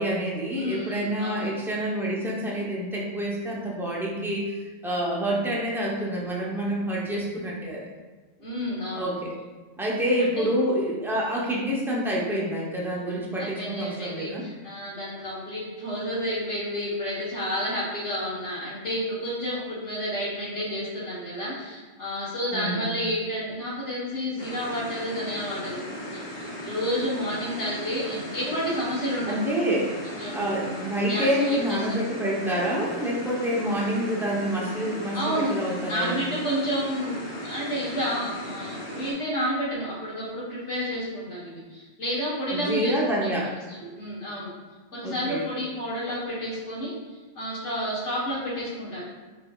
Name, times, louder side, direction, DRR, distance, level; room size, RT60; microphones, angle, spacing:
voice 1, 0.0-4.5 4.8-7.9 9.0-9.3 9.8-14.4 22.5-22.9 29.3-29.9 30.3-36.2 42.5-43.5 45.0-45.4, equal, 5° right, -4 dB, 0.3 m, -27 dB
voice 2, 0.5-1.5 8.4-9.1 10.2-10.5 13.4-29.3 30.2-30.4 31.1-32.0 35.1-35.5 35.9-43.3 43.7-44.5 44.9-46.9 47.3-49.0, equal, 70° left, -7 dB, 1.5 m, -30 dB
sound 1, 24.4-39.1, equal, 40° left, 0.9 m, -37 dB
4.0 x 4.0 x 2.3 m, 1.3 s
omnidirectional pair, 1.2 m